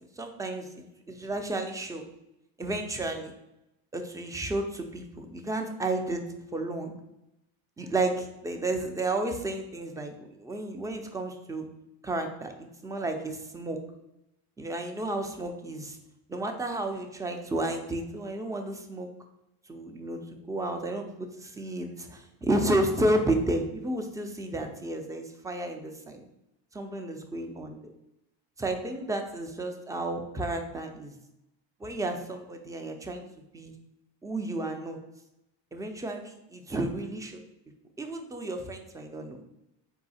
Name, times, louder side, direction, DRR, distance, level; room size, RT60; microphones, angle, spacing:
voice 1, 0.0-2.0 2.6-3.3 3.9-6.2 6.5-6.9 7.8-11.7 12.0-13.8 14.6-16.0 16.3-19.1 19.7-26.2 26.7-27.9 28.6-31.1 31.8-33.2 33.5-33.7 34.2-35.0 35.7-37.4 38.0-39.4, right 1 dB, 10° right, 4 dB, 0.4 m, -32 dB
3.9 x 2.8 x 4.1 m, 0.89 s
supercardioid pair, 85°, 49 cm